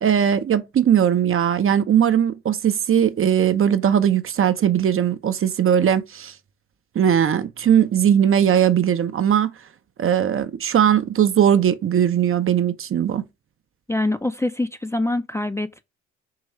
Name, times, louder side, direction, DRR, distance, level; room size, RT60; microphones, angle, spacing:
voice 1, 0.0-6.3 6.9-9.5 10.0-13.2, right 9 dB, 45° right, 0.7 m, -19 dB
voice 2, 13.9-15.8, left 2 dB, 10° left, 0.5 m, -24 dB
4.8 x 3.1 x 3.0 m
hypercardioid pair, 55°, 32 cm